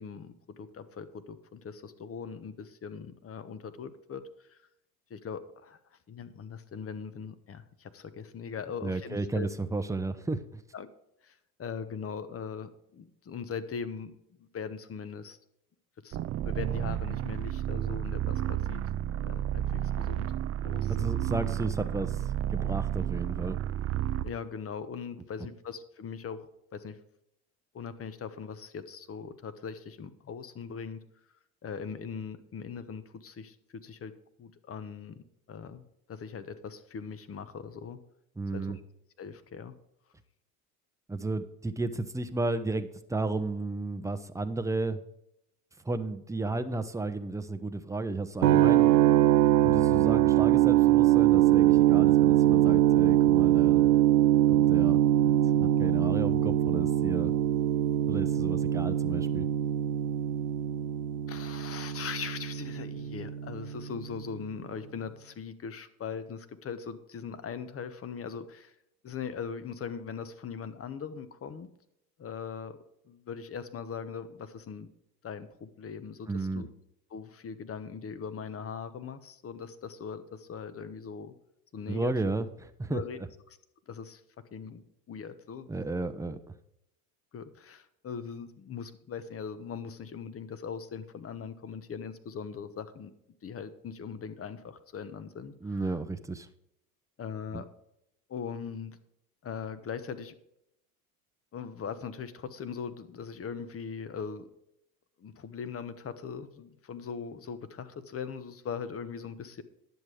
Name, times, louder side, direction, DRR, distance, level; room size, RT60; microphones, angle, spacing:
voice 1, 0.0-4.6 5.1-9.5 10.7-10.9 11.2-14.1 14.4-15.4 16.0-18.8 19.2-20.3 20.6-21.1 24.2-27.0 27.7-31.0 31.6-34.1 34.4-35.8 36.1-38.0 38.5-38.8 39.2-39.7 61.3-68.7 69.0-71.7 72.2-72.8 73.1-74.9 75.2-76.7 77.1-81.3 81.7-82.1 82.9-83.2 83.5-83.6 83.9-84.2 84.5-85.7 87.3-93.1 93.4-95.7 97.2-97.7 98.3-99.0 99.4-100.3 101.5-104.5 105.2-109.6, left 6 dB, 30° left, 13 dB, 1.1 m, -40 dB
voice 2, 8.8-10.4 20.9-23.6 38.4-38.8 41.1-45.0 45.8-48.9 49.6-53.9 54.5-57.3 58.1-59.5 76.3-76.6 81.9-83.0 85.7-86.4 95.6-96.5 97.5-97.6, right 3 dB, 5° right, 9 dB, 0.9 m, -33 dB
sound 1, 16.1-24.4, right 11 dB, 35° right, 0.5 m, -31 dB
sound 2, 48.4-64.3, right 13 dB, 90° right, 0.7 m, -23 dB
10.5 x 7.6 x 4.9 m, 0.79 s
hypercardioid pair, 80°, 44 cm